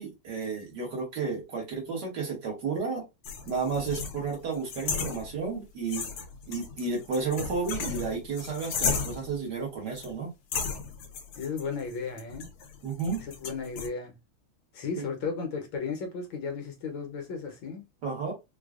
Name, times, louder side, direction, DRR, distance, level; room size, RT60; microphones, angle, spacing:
voice 1, 0.0-3.0 3.5-6.0 6.5-10.3 12.8-13.2 15.0-15.1 18.0-18.3, right 4 dB, 55° right, 2.0 m, -32 dB
sound 1, 3.2-5.6 5.9-9.4 10.0-10.1 10.5-13.9, left 5 dB, 90° left, 1.6 m, -35 dB
voice 2, 11.4-12.5 13.2-14.1 14.7-17.8, left 5 dB, 70° left, 1.6 m, -34 dB
4.6 x 2.4 x 2.4 m
omnidirectional pair, 2.3 m